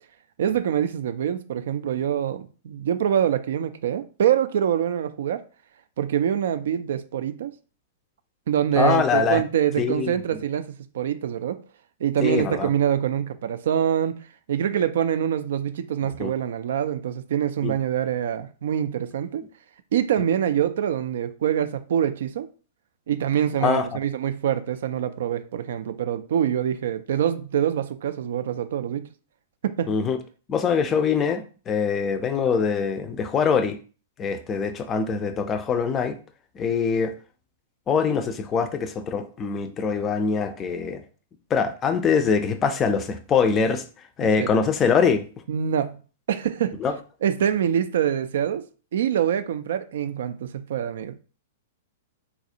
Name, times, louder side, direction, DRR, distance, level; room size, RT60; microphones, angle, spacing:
voice 1, 0.4-5.4 6.0-7.5 8.5-11.6 12.0-14.2 14.5-19.4 19.9-22.5 23.1-29.1 29.6-29.9 44.4-44.5 45.5-46.0 46.3-46.8 47.2-48.6 48.9-51.2, right 9 dB, 60° right, 0.3 m, -25 dB
voice 2, 8.8-9.4 9.8-10.1 12.2-12.7 16.0-16.3 17.6-17.7 23.6-23.9 29.9-30.2 30.5-33.8 34.2-36.2 36.6-37.2 37.9-41.0 41.5-43.8 44.2-45.2 46.8-46.9, left 6 dB, 25° left, 0.4 m, -23 dB
4.0 x 2.3 x 2.7 m
figure-of-eight pair, 105°, 0 cm